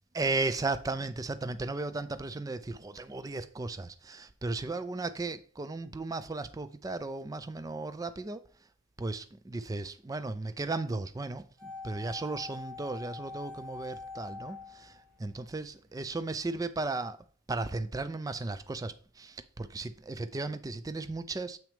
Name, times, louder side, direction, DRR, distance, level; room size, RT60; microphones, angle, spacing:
voice 1, 0.1-8.4 9.0-17.2 17.5-21.6, right 3 dB, 15° right, 0.3 m, -35 dB
sound 1, 11.6-15.7 15.9-16.0, left 4 dB, 60° right, 3.1 m, -44 dB
7.5 x 5.9 x 3.4 m
head